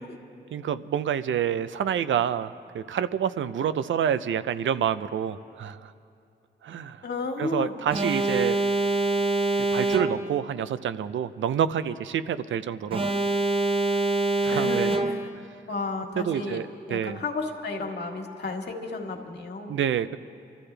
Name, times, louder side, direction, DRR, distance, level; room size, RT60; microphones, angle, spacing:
voice 1, 0.5-5.9 6.6-7.0 7.4-8.6 9.7-13.1 14.4-14.9 16.2-17.2 19.7-20.2, right 9 dB, 80° right, 13 dB, 0.5 m, -28 dB
voice 2, 7.0-7.7 14.5-15.3 15.7-16.6 16.9-19.7, left 3 dB, 60° left, 2 dB, 1.7 m, -32 dB
Alarm, 7.9-10.5 12.9-15.5, right 2 dB, 25° right, 0.9 m, -25 dB
25.0 x 13.5 x 3.3 m, 2.5 s
cardioid pair, 65°, 19 cm